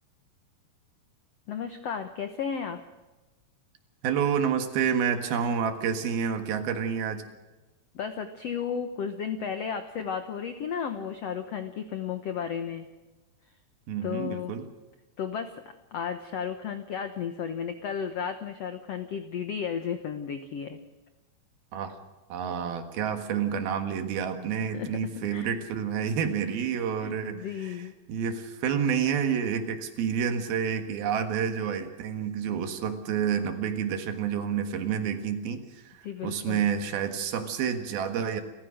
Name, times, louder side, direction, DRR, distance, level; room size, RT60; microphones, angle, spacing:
voice 1, 1.5-2.8 7.9-12.8 14.0-14.5 15.2-15.6 15.9-20.8 24.7-25.5 27.0-27.9 36.0-36.7, left 7 dB, 90° left, 8 dB, 1.4 m, -33 dB
voice 2, 4.0-7.2 13.9-14.7 21.7-22.0 22.3-38.4, right 7 dB, 70° right, 7 dB, 3.5 m, -29 dB
28.5 x 15.0 x 6.4 m, 1.1 s
omnidirectional pair, 4.6 m